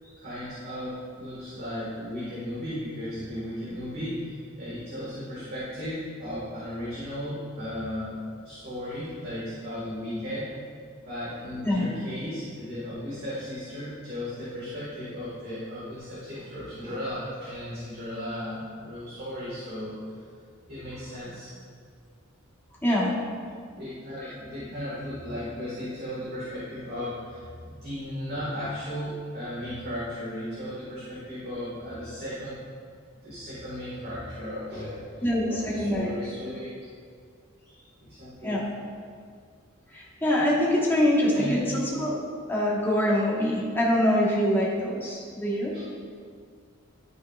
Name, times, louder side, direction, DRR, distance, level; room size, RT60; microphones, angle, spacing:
voice 1, 0.2-10.5 11.1-20.0 20.7-21.5 23.8-32.6 33.1-36.7 38.1-38.6 41.3-41.6 45.7-45.8, equal, 45° right, -9 dB, 1.9 m, -35 dB
voice 2, 22.8-23.1 24.2-24.3 35.2-36.1 38.4-38.7 39.9-42.1 42.5-45.7, left 1 dB, 10° left, -5 dB, 1.5 m, -24 dB
12.0 x 5.8 x 2.5 m, 2.1 s
head